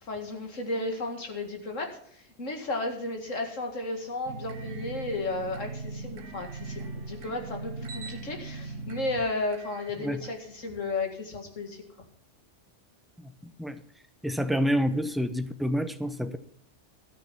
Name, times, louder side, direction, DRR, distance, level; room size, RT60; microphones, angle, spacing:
voice 1, 0.0-11.8, left 2 dB, 85° left, 4 dB, 2.3 m, -33 dB
sound 1, 4.3-10.8, right 3 dB, 90° right, 1.3 m, -40 dB
voice 2, 13.2-13.8 14.2-16.4, equal, ahead, 9 dB, 0.5 m, -28 dB
13.0 x 9.0 x 5.8 m, 0.67 s
omnidirectional pair, 1.3 m